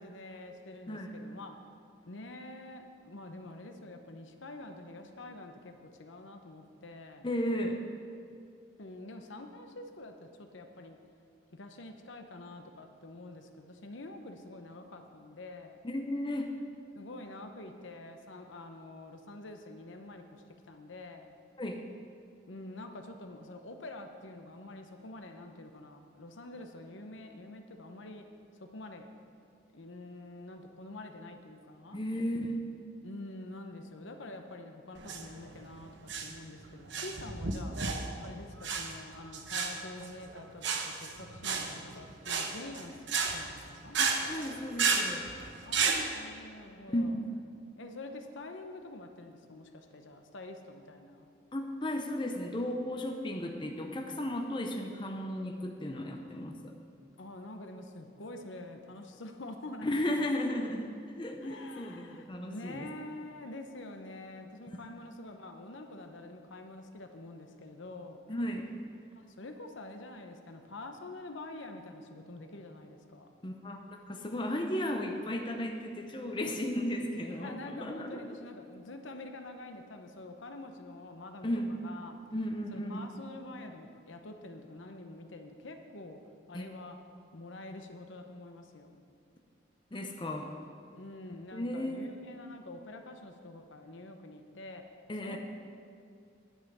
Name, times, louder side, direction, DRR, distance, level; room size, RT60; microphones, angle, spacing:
voice 1, 0.0-1.6 2.1-7.3 8.8-11.0 11.5-15.8 16.9-21.3 22.5-28.3 28.6-29.1 29.7-32.0 33.0-37.8 38.2-44.0 45.7-47.2 47.8-51.3 57.2-60.3 61.4-68.2 69.2-73.3 77.2-82.2 82.7-86.2 86.5-87.0 87.3-89.0 90.9-94.8 95.2-95.4, left 2 dB, 80° left, 5 dB, 0.9 m, -46 dB
voice 2, 7.2-7.8 15.8-16.6 21.6-21.8 31.9-32.6 44.0-45.3 46.9-47.1 51.5-56.7 59.8-62.8 64.7-64.8 68.3-68.7 73.4-78.3 81.4-81.8 82.3-83.0 86.5-86.7 89.9-90.5 91.5-92.0 95.1-95.4, left 1 dB, 25° left, 3 dB, 0.6 m, -35 dB
sound 1, 34.9-46.0, right 5 dB, 70° right, 0.9 m, -33 dB
10.0 x 5.6 x 7.9 m, 2.4 s
head